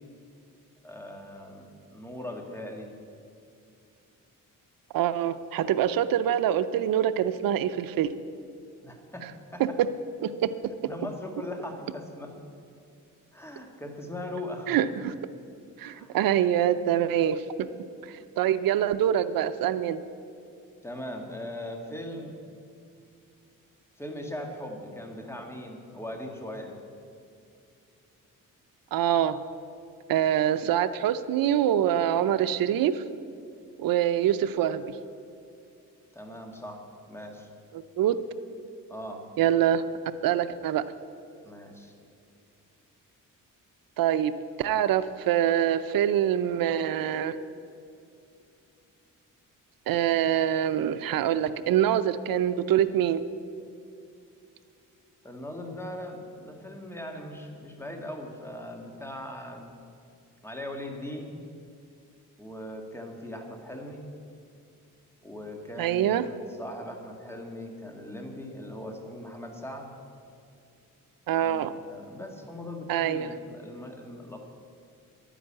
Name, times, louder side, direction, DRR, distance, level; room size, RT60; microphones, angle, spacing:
voice 1, 0.8-2.9 8.8-9.8 10.9-12.4 13.3-14.8 15.8-16.2 20.8-22.4 24.0-26.8 36.1-37.5 38.9-39.3 41.4-41.9 55.2-59.7 60.4-61.3 62.4-64.1 65.2-69.9 71.4-74.4, left 1 dB, 5° left, 2 dB, 1.9 m, -40 dB
voice 2, 4.9-8.1 9.6-9.7 10.2-10.5 14.7-15.1 15.8-17.4 18.4-20.0 28.9-29.4 30.1-33.0 33.8-34.8 38.0-38.2 39.4-39.8 40.2-40.8 44.0-44.3 44.6-47.4 49.9-53.2 65.8-66.3 71.3-71.7 72.9-73.3, right 10 dB, 85° right, 13 dB, 0.6 m, -25 dB
11.5 x 10.0 x 8.7 m, 2.5 s
cardioid pair, 115°, 33 cm